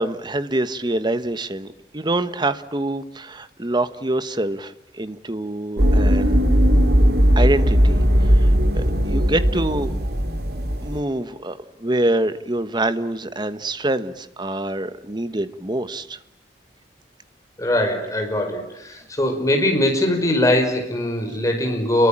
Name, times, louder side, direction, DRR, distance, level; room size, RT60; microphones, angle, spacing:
voice 1, 0.0-1.7 1.9-6.5 7.4-9.9 10.8-16.2, right 1 dB, 25° right, 12 dB, 1.3 m, -25 dB
sound 1, 5.8-11.0, equal, 60° right, 2.8 m, -17 dB
voice 2, 17.6-22.1, left 1 dB, 20° left, 3 dB, 5.3 m, -21 dB
29.5 x 23.0 x 8.9 m, 0.80 s
head